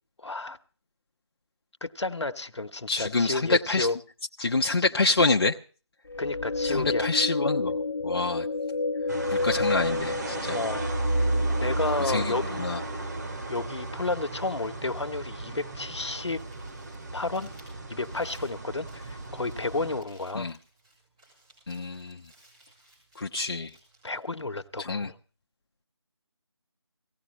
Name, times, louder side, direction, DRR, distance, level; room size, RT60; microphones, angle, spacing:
voice 1, 0.2-0.6 1.8-4.0 6.2-7.1 10.5-10.8 11.6-12.5 13.5-16.4 17.1-17.5 17.9-20.5 24.0-25.1, left 3 dB, 80° left, 1.3 m, -31 dB
voice 2, 2.9-3.9 4.4-5.6 6.6-7.8 8.0-8.5 9.3-10.6 12.0-12.8 20.3-20.6 21.7-22.2 23.2-23.7 24.8-25.1, left 3 dB, 55° left, 0.8 m, -27 dB
sound 1, 6.1-13.4, left 3 dB, 35° left, 1.2 m, -31 dB
sound 2, 9.1-20.0, right 2 dB, 40° right, 1.9 m, -33 dB
Crumpling crinkling, 16.1-25.1, right 1 dB, 15° right, 6.1 m, -59 dB
19.0 x 16.5 x 3.1 m
figure-of-eight pair, 165°, 15 cm